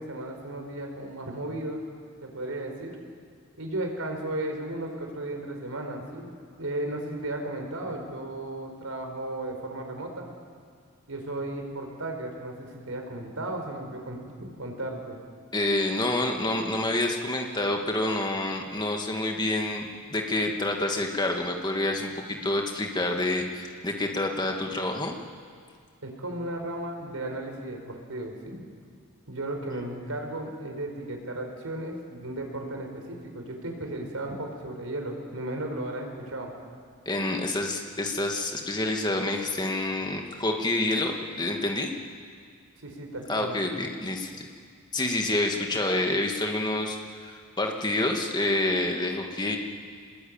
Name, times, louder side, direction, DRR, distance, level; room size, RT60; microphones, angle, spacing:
voice 1, 0.0-1.8 2.2-3.0 3.6-10.3 11.1-15.2 26.0-28.7 29.3-36.5 42.8-43.6, right 1 dB, 80° right, 3 dB, 4.6 m, -35 dB
voice 2, 15.5-25.2 37.1-41.9 43.3-44.5 44.9-47.0 47.2-49.6, left 2 dB, 20° left, 2 dB, 2.0 m, -28 dB
25.0 x 21.0 x 8.9 m, 2.1 s
head